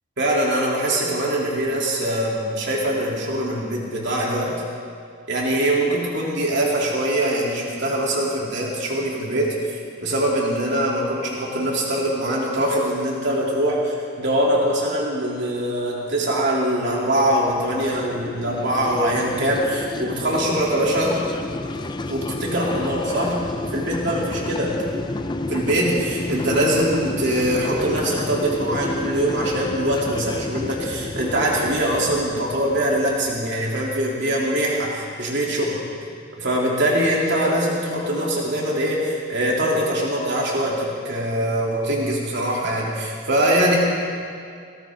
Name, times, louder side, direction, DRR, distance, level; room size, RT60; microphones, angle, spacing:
voice 1, 0.2-4.6 5.3-21.2 22.1-23.4 23.7-24.8 25.5-35.7 36.4-43.8, right 1 dB, 55° right, -4 dB, 3.2 m, -23 dB
sound 1, 17.2-33.8, left 2 dB, 20° left, 0.4 m, -31 dB
18.5 x 17.5 x 3.8 m, 2.3 s
head